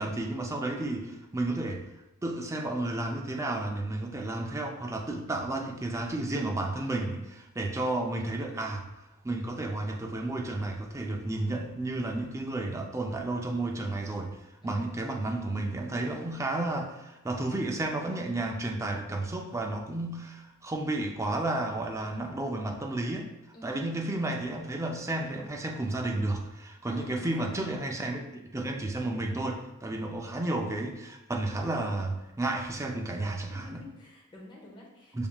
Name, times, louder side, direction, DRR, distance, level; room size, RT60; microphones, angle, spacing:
voice 1, 0.0-1.8 2.2-8.8 9.2-14.4 14.6-23.3 23.6-33.8 35.1-35.3, right 2 dB, 15° right, 2 dB, 0.4 m, -32 dB
voice 2, 14.6-15.0 23.5-23.8 26.9-27.7 29.9-30.2 33.5-35.3, left 1 dB, 20° left, -3 dB, 0.7 m, -49 dB
5.8 x 3.5 x 2.3 m, 0.96 s
head